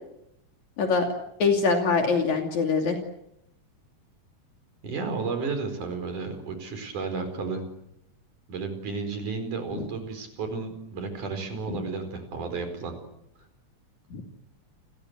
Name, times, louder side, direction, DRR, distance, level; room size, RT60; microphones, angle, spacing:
voice 1, 0.8-1.1 1.4-3.0 9.7-9.9 11.7-11.8 14.1-14.2, left 4 dB, 70° left, 3 dB, 4.1 m, -24 dB
voice 2, 4.8-7.6 8.5-12.9, right 4 dB, 80° right, 7 dB, 6.1 m, -32 dB
29.0 x 21.0 x 8.2 m, 0.81 s
omnidirectional pair, 3.5 m